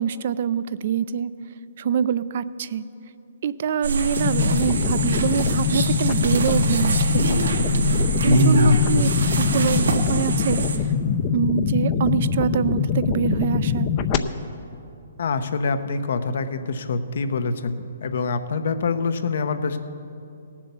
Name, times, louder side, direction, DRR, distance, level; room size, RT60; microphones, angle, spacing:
voice 1, 0.0-1.3 1.8-2.8 3.4-7.5 8.2-10.7 11.3-13.9, right 7 dB, 55° right, 16 dB, 0.5 m, -25 dB
sound 1, 3.8-10.8, right 1 dB, 85° right, 1.5 m, -23 dB
sound 2, 4.2-14.2, left 7 dB, 35° left, 0.6 m, -23 dB
voice 2, 15.2-19.8, left 4 dB, 65° left, 9 dB, 0.9 m, -25 dB
17.5 x 7.5 x 6.9 m, 2.6 s
hypercardioid pair, 145°, 0 cm